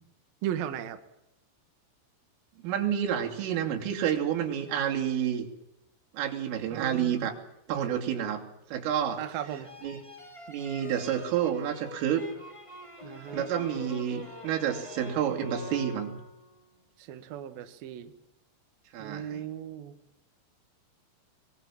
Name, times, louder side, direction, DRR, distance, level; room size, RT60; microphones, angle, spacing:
voice 1, 0.4-1.0 6.7-7.3 9.2-9.7 13.0-13.4 17.0-18.1 19.0-19.9, right 10 dB, 60° right, 8 dB, 2.7 m, -36 dB
voice 2, 2.6-5.5 6.1-7.3 7.7-8.4 8.7-9.2 9.8-10.0 10.5-12.2 13.3-16.2 18.9-19.4, right 9 dB, 80° right, 2 dB, 5.3 m, -29 dB
sound 1, 9.4-16.6, left 2 dB, 10° left, 1.5 m, -45 dB
23.5 x 21.0 x 7.2 m, 0.83 s
omnidirectional pair, 5.7 m